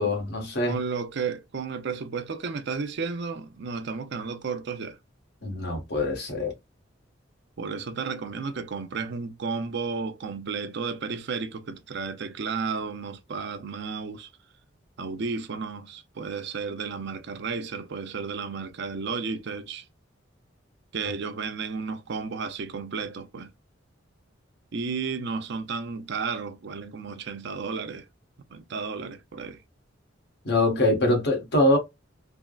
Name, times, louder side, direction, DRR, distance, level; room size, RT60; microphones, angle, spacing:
voice 1, 0.0-0.8 5.4-6.5 30.4-31.8, left 1 dB, 60° left, 1.2 m, -23 dB
voice 2, 0.7-5.0 7.6-14.3 15.0-19.9 20.9-23.5 24.7-28.1 28.5-29.6, right 5 dB, 60° right, 0.5 m, -33 dB
3.4 x 2.1 x 2.3 m
head